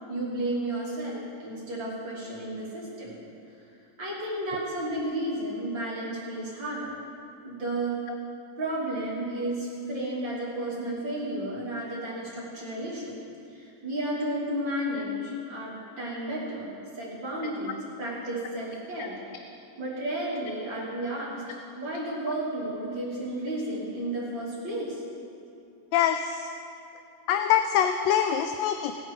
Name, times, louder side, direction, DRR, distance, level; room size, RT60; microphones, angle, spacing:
voice 1, 0.1-3.1 4.0-6.9 7.4-8.0 8.6-13.2 13.5-19.2 19.8-21.4 21.8-25.0, right 1 dB, 85° right, -7 dB, 3.9 m, -32 dB
voice 2, 25.9-26.4 27.3-28.9, left 9 dB, 85° left, 7 dB, 1.3 m, -24 dB
19.0 x 9.2 x 4.5 m, 2.6 s
omnidirectional pair, 2.0 m